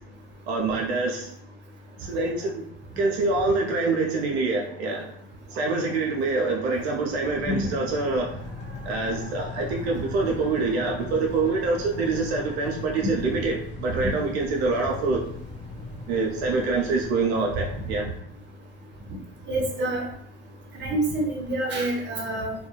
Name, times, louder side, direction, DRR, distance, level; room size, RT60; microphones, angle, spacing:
voice 1, 0.5-1.3 2.0-2.6 3.0-5.0 5.5-8.3 8.9-13.5 13.8-15.2 16.1-18.1, right 3 dB, 80° right, 0 dB, 0.5 m, -25 dB
sound 1, 7.0-18.0, left 3 dB, 20° left, 1.2 m, -39 dB
voice 2, 19.5-20.0 20.8-22.5, right 1 dB, 35° right, 0 dB, 0.9 m, -27 dB
2.3 x 2.2 x 3.0 m, 0.68 s
hypercardioid pair, 75°, 31 cm